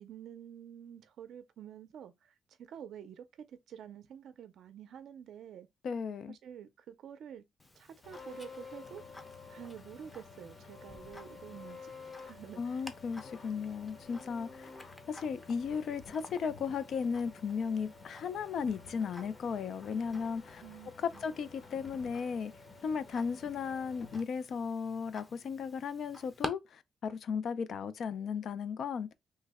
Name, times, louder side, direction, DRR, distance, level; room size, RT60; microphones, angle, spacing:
voice 1, 0.0-5.7 6.3-7.4 7.7-9.0 9.5-11.9 12.2-12.8 20.6-21.2, right 9 dB, 80° right, 0.4 m, -49 dB
voice 2, 5.8-6.3 12.6-14.7 15.1-20.6 21.0-22.5 22.8-29.1, left 6 dB, 65° left, 0.4 m, -35 dB
Tick-tock, 7.6-26.5, left 2 dB, 20° left, 0.6 m, -51 dB
sound 1, 8.0-24.2, left 4 dB, 45° left, 0.9 m, -51 dB
3.2 x 2.0 x 3.4 m
cardioid pair, 105°, 0 cm